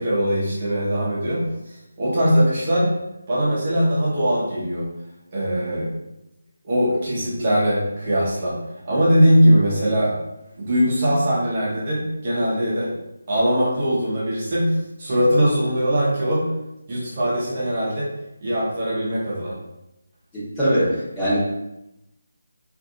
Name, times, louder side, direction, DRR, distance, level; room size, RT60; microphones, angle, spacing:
voice 1, 0.0-1.5 2.0-2.9 3.3-4.8 5.3-5.9 6.6-8.6 8.8-10.1 10.6-12.9 13.3-16.5 16.9-18.1 18.4-19.6, equal, 35° right, -7 dB, 0.8 m, -21 dB
voice 2, 20.3-21.4, equal, 10° left, -13 dB, 1.1 m, -21 dB
2.6 x 2.5 x 2.5 m, 0.88 s
figure-of-eight pair, 155°, 0 cm